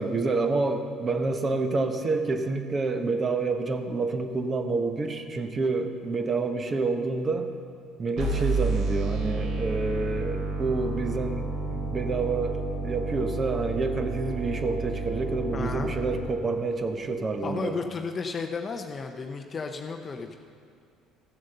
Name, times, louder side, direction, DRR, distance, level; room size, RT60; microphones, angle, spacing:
voice 1, 0.0-7.5 8.0-17.8, right 3 dB, 30° right, 6 dB, 1.1 m, -28 dB
sound 1, 8.2-16.2, right 3 dB, 70° right, 3.4 m, -30 dB
voice 2, 15.5-15.9 17.4-20.3, left 4 dB, 30° left, 4 dB, 0.7 m, -33 dB
14.0 x 7.8 x 6.7 m, 2.2 s
cardioid pair, 105°, 0 cm